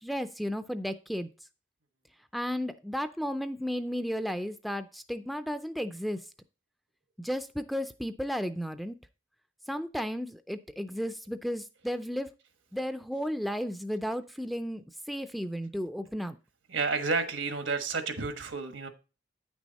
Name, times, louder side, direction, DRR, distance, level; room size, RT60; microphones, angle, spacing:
voice 1, 0.0-1.3 2.3-6.2 7.2-9.0 9.7-12.3 12.7-16.4, equal, ahead, 0.4 m, -34 dB
voice 2, 16.7-18.9, right 4 dB, 80° right, 1.3 m, -31 dB
9.1 x 6.2 x 4.1 m
head